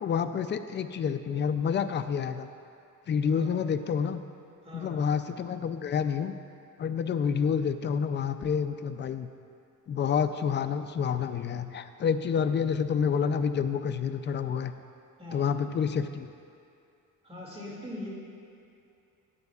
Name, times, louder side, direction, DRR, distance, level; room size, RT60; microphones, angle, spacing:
voice 1, 0.0-2.5 3.1-4.2 4.7-6.3 6.8-9.3 9.9-14.7 15.3-16.3, left 7 dB, 35° left, 10 dB, 0.4 m, -28 dB
voice 2, 3.3-3.7 4.6-5.1 15.2-15.6 17.2-18.1, left 1 dB, 20° right, -5 dB, 2.2 m, -42 dB
15.0 x 9.0 x 2.4 m, 2.6 s
cardioid pair, 130°, 32 cm